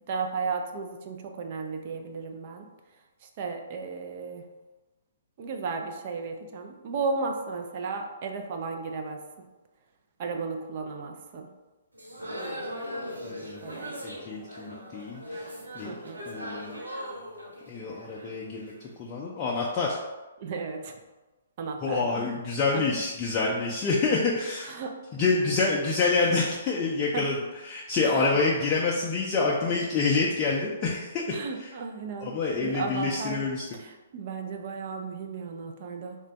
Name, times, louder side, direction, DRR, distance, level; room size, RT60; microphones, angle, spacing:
voice 1, 0.1-2.7 3.4-4.4 5.4-9.2 10.2-11.5 13.6-13.9 15.8-16.2 20.4-21.0 21.6-22.4 22.7-22.8 24.7-24.9 25.3-25.6 27.1-27.2 28.0-28.4 31.3-33.4 33.8-36.2, right 4 dB, 40° right, 4 dB, 0.4 m, -34 dB
sound 1, 11.9-18.9, equal, 85° right, 0.7 m, -39 dB
voice 2, 13.2-13.7 14.0-15.9 16.3-16.8 17.7-18.7 19.0-20.0 21.8-24.7 25.1-31.2 31.6-31.7 32.2-33.8, left 4 dB, 25° left, -4 dB, 0.4 m, -27 dB
3.2 x 2.2 x 3.9 m, 1.1 s
figure-of-eight pair, 125°, 0 cm